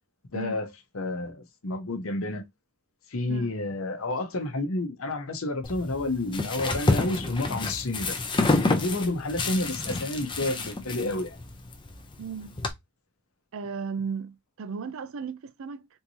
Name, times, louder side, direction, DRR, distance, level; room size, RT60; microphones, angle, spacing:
voice 1, 0.3-0.7 0.9-2.4 3.1-8.2 8.7-11.4, left 2 dB, 65° left, 0.8 m, -30 dB
sound 1, 5.6-12.7, left 2 dB, 20° left, 0.5 m, -28 dB
voice 2, 12.2-12.6 13.5-15.9, right 5 dB, 65° right, 0.4 m, -35 dB
3.6 x 2.7 x 2.8 m
head